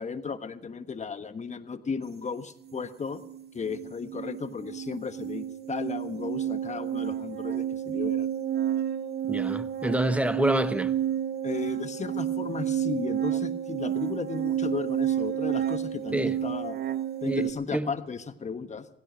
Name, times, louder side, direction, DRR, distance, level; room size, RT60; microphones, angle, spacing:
voice 1, 0.0-3.2 3.5-8.3 11.4-16.8 17.2-18.9, left 5 dB, 35° left, 1.2 m, -35 dB
sound 1, 2.7-2.9 3.1-17.5, right 10 dB, 55° right, 0.8 m, -30 dB
voice 2, 9.3-10.9 16.1-16.4 17.3-17.4 17.7-17.9, right 1 dB, 5° right, 1.0 m, -27 dB
16.5 x 16.0 x 5.1 m
cardioid pair, 90°, 20 cm